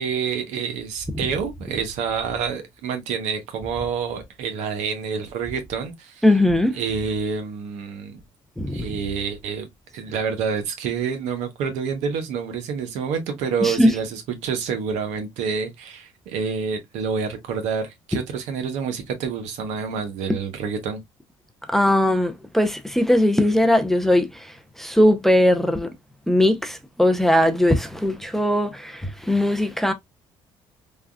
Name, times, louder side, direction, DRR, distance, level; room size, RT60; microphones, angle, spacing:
voice 1, 0.0-6.2 6.7-8.2 8.7-21.0, right 6 dB, 80° right, 0.8 m, -28 dB
voice 2, 6.2-6.8 8.6-9.0 13.6-13.9 21.7-25.9 26.3-29.9, left 1 dB, 5° left, 0.5 m, -19 dB
3.4 x 2.3 x 2.2 m
supercardioid pair, 85°, 12 cm